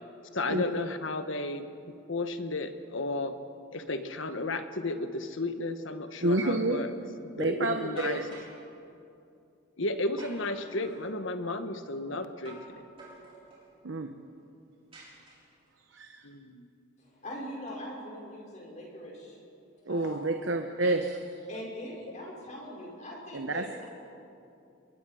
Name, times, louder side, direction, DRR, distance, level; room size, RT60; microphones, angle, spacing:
voice 1, 0.3-1.6 2.1-3.3 3.7-6.9 7.2-8.2 9.8-12.9 16.2-16.7, left 2 dB, 70° left, 8 dB, 1.3 m, -33 dB
voice 2, 6.2-6.9 7.4-8.3 13.8-14.1 15.9-16.3 19.9-21.2 23.3-23.8, right 2 dB, 65° right, 5 dB, 1.0 m, -29 dB
sound 1, 8.0-8.6 10.2-11.1 12.4-12.7 13.0-13.7 14.9-15.7, right 2 dB, 25° right, 6.5 m, -49 dB
voice 3, 17.0-19.4 19.9-21.0 21.5-23.8, equal, 35° left, -3 dB, 5.3 m, -42 dB
29.0 x 22.5 x 5.0 m, 2.6 s
head